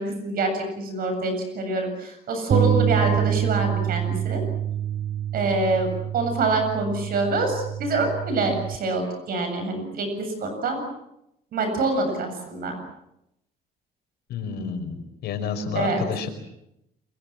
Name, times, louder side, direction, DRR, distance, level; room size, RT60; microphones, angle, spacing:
voice 1, 0.0-4.4 5.3-5.9 6.1-10.8 11.5-12.8 15.7-16.0, right 2 dB, 60° right, 6 dB, 7.9 m, -26 dB
sound 1, 2.5-8.8, right 10 dB, 35° right, 1.2 m, -26 dB
voice 2, 14.3-16.3, left 6 dB, 75° left, 7 dB, 5.5 m, -30 dB
29.5 x 23.0 x 7.6 m, 0.82 s
cardioid pair, 110°, 17 cm